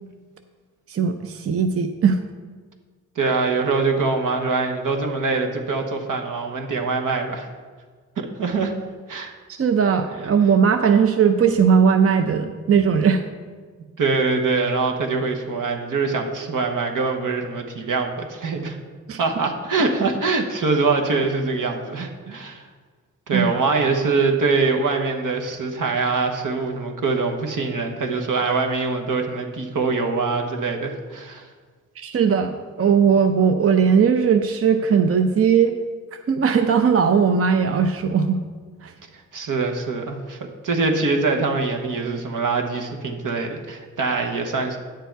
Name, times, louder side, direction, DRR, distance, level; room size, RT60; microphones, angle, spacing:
voice 1, 0.9-2.2 9.5-13.2 19.1-19.2 23.3-23.5 32.0-35.8 36.3-38.4 38.8-38.9, right 6 dB, 45° right, 7 dB, 0.6 m, -18 dB
voice 2, 3.2-7.5 8.2-8.7 9.1-9.3 14.0-18.8 19.2-22.6 23.3-31.5 39.3-40.4 40.6-44.8, right 4 dB, 75° right, 3 dB, 1.2 m, -23 dB
9.2 x 6.9 x 4.6 m, 1.5 s
cardioid pair, 65°, 32 cm